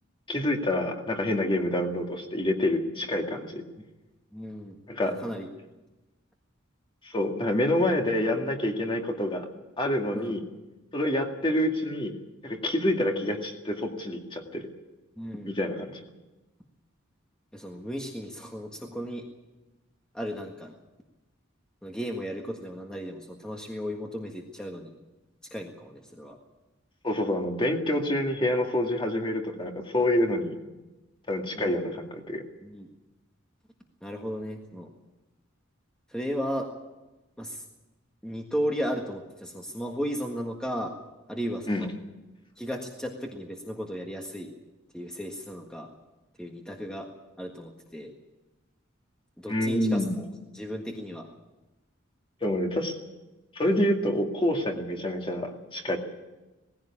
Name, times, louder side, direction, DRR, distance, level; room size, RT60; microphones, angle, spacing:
voice 1, 0.3-3.6 4.9-5.2 7.0-9.5 9.8-10.4 10.9-12.1 12.4-14.7 15.5-16.0 27.0-30.6 31.3-32.4 41.7-41.9 49.5-50.1 52.4-53.0 53.5-56.0, left 1 dB, 25° left, 3 dB, 2.2 m, -27 dB
voice 2, 4.3-4.8 5.0-5.5 10.1-10.3 15.2-15.5 17.5-19.2 20.1-20.7 21.8-24.9 25.5-26.4 31.5-31.8 32.6-32.9 34.0-34.9 36.1-36.7 37.4-37.6 38.2-40.9 41.3-41.9 42.6-44.5 44.9-45.9 46.4-47.1 47.4-48.1 49.4-51.3, equal, 5° left, 1 dB, 1.6 m, -35 dB
19.0 x 15.5 x 8.6 m, 1.1 s
head